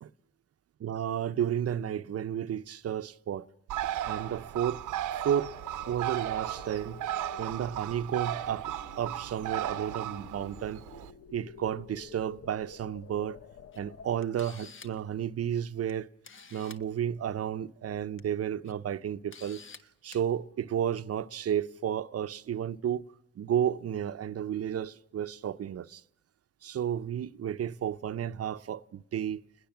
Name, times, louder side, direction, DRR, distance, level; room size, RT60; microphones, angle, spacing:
voice 1, 0.8-3.5 4.1-4.8 5.2-5.5 5.9-7.0 7.4-10.8 11.3-13.4 13.8-16.1 16.5-19.6 20.0-23.1 23.4-26.0 26.6-29.4, right 9 dB, 55° right, 1.0 m, -32 dB
Bird, 3.7-11.1, right 12 dB, 85° right, 1.1 m, -36 dB
sound 1, 5.5-14.1, left 6 dB, 55° left, 1.3 m, -51 dB
Camera, 13.7-13.8 14.2-15.0 15.9-16.0 16.2-16.8 18.0-18.2 18.6-18.7 19.3-19.8 20.1-20.2, left 5 dB, 40° left, 1.5 m, -49 dB
28.5 x 20.5 x 7.4 m
cardioid pair, 90°, 30 cm